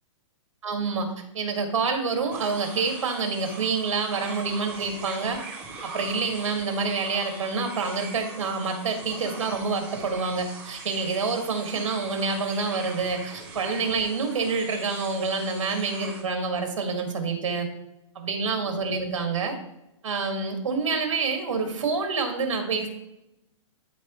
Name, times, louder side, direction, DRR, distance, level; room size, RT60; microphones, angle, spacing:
voice 1, 0.6-5.4 5.8-17.7 18.2-19.5 20.0-22.9, right 4 dB, 70° right, 4 dB, 2.1 m, -27 dB
sound 1, 2.3-16.2, right 4 dB, 10° right, 0.8 m, -41 dB
13.0 x 4.5 x 3.1 m, 0.89 s
hypercardioid pair, 180°, 17 cm